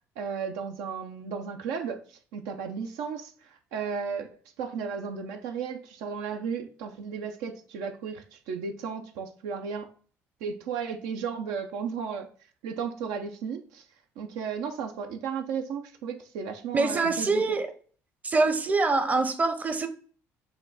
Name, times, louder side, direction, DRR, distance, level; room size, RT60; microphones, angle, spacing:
voice 1, 0.2-4.3 4.6-9.9 10.4-12.3 12.6-13.8 14.2-17.6, right 6 dB, 85° right, 0.6 m, -34 dB
voice 2, 16.7-17.7 18.2-19.9, right 3 dB, 25° right, 0.6 m, -24 dB
5.7 x 2.3 x 3.9 m
supercardioid pair, 80°, 6 cm